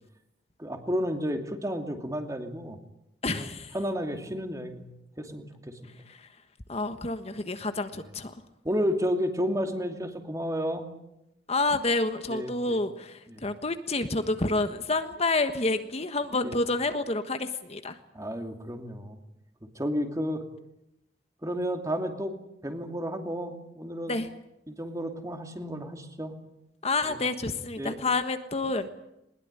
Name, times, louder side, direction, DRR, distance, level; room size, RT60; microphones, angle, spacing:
voice 1, 0.6-2.8 3.3-3.5 3.7-4.9 5.2-5.9 7.9-8.1 8.6-10.9 12.3-12.8 13.3-13.4 16.4-16.6 18.1-19.2 19.7-20.4 21.4-22.3 22.6-24.2 24.7-26.3 27.1-27.2 27.8-28.0, equal, 20° right, 5 dB, 2.7 m, -32 dB
voice 2, 3.2-3.7 6.1-6.2 6.7-8.3 11.5-18.0 24.1-24.3 26.8-28.9, left 2 dB, 35° left, 9 dB, 1.4 m, -29 dB
21.0 x 21.0 x 9.9 m, 0.85 s
head